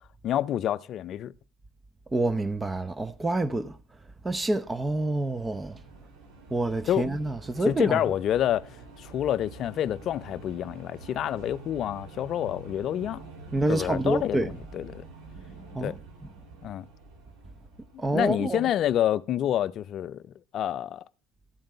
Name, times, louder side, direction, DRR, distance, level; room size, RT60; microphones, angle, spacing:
voice 1, 0.2-1.3 6.9-7.1 7.6-8.7 9.0-13.2 13.7-15.1 15.8-16.0 16.6-16.9 18.1-20.2 20.5-21.0, left 11 dB, 50° left, 0.5 m, -28 dB
voice 2, 2.1-3.7 4.2-5.7 6.5-8.0 13.5-14.5 15.7-15.9 18.0-18.6, right 2 dB, 20° right, 0.7 m, -27 dB
sound 1, 4.4-18.8, right 3 dB, 70° right, 2.8 m, -47 dB
12.5 x 8.8 x 3.3 m
hypercardioid pair, 75°, 0 cm